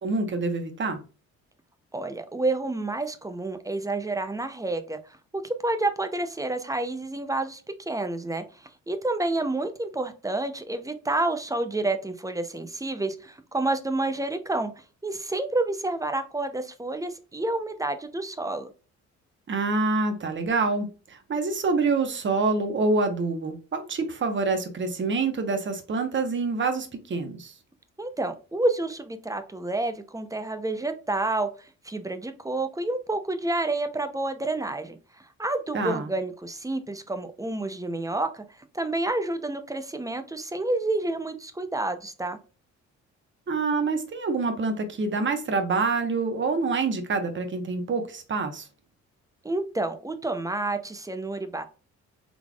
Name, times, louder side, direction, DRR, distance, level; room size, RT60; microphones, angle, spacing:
voice 1, 0.0-1.0 19.5-20.9 21.3-27.5 35.7-36.1 43.5-48.6, right 3 dB, 40° right, 1.0 m, -26 dB
voice 2, 1.9-5.0 5.3-8.4 8.9-14.7 15.0-18.7 28.0-31.5 31.8-35.0 35.4-38.4 38.7-42.4 49.4-51.6, right 2 dB, 10° right, 0.6 m, -29 dB
3.9 x 3.4 x 2.3 m
cardioid pair, 90°, 30 cm